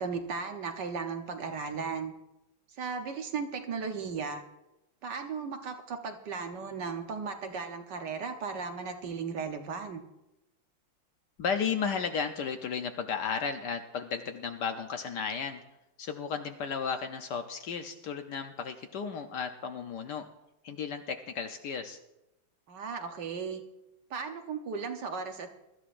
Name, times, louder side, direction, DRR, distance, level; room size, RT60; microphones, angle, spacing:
voice 1, 0.0-2.1 2.8-4.4 5.0-10.0 22.7-23.6 24.1-25.5, right 5 dB, 60° right, 5 dB, 1.5 m, -36 dB
voice 2, 11.4-15.6 16.0-20.2 20.6-22.0, left 6 dB, 65° left, 6 dB, 1.2 m, -34 dB
22.5 x 13.0 x 2.5 m, 0.93 s
omnidirectional pair, 2.2 m